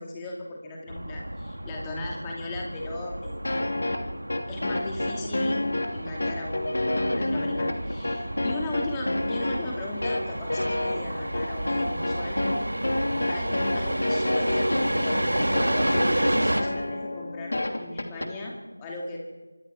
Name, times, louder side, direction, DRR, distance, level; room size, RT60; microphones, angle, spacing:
voice 1, 0.0-3.4 4.5-12.4 13.3-19.2, left 2 dB, 10° left, -1 dB, 2.5 m, -37 dB
sound 1, 0.9-16.6, right 1 dB, 75° right, 2.6 m, -31 dB
sound 2, 3.4-18.3, left 1 dB, 55° left, 2.8 m, -28 dB
26.0 x 23.5 x 4.8 m, 1.2 s
figure-of-eight pair, 170°, 0 cm